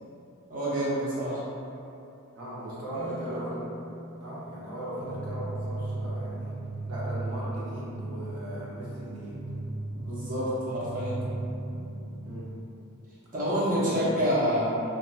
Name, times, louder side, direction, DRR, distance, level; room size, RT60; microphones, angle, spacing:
voice 1, 0.5-1.4 3.0-3.4 9.9-11.2 13.3-14.7, equal, 40° right, -11 dB, 0.9 m, -28 dB
voice 2, 2.3-3.5 4.2-6.5 6.9-9.3 12.2-12.5 13.5-14.0, right 1 dB, 75° right, -7 dB, 0.7 m, -38 dB
sound 1, 2.9-7.2, left 1 dB, 65° left, 0.5 m, -46 dB
sound 2, 5.0-12.6, right 2 dB, 55° right, 0.3 m, -36 dB
2.5 x 2.5 x 2.4 m, 2.7 s
head